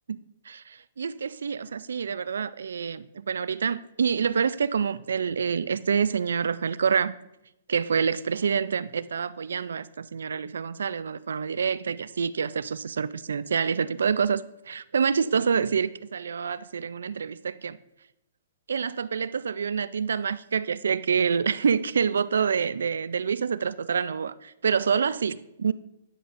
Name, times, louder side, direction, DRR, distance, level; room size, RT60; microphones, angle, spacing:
voice 1, 0.5-7.1 7.7-17.8 18.7-25.7, right 6 dB, 85° right, 0.3 m, -27 dB
10.0 x 6.8 x 2.5 m
hypercardioid pair, 140°, 0 cm